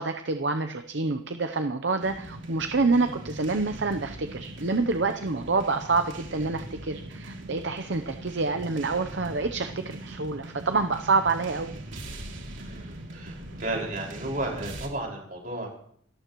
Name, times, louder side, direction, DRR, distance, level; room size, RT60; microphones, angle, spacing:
voice 1, 0.0-11.8, right 3 dB, 65° right, 8 dB, 0.8 m, -27 dB
sound 1, 2.0-14.9, right 1 dB, 85° right, 3.0 m, -41 dB
voice 2, 12.6-15.7, right 1 dB, 45° right, -1 dB, 5.4 m, -33 dB
28.0 x 13.5 x 3.1 m, 0.63 s
head